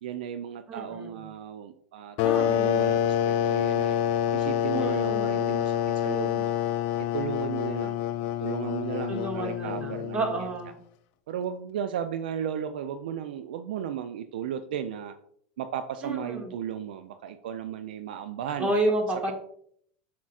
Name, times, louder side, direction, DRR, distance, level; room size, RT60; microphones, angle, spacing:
voice 1, 0.0-4.0 4.3-6.5 7.0-8.0 8.4-10.3 11.3-15.1 15.6-18.7, right 9 dB, 70° right, 9 dB, 0.4 m, -35 dB
voice 2, 0.7-1.3 2.2-2.7 4.7-5.4 9.1-10.8 16.0-16.5 18.6-19.3, right 2 dB, 25° right, 2 dB, 1.8 m, -30 dB
sound 1, 2.2-10.6, left 10 dB, 55° left, 0.5 m, -27 dB
7.2 x 5.9 x 2.4 m, 0.66 s
hypercardioid pair, 85°, 5 cm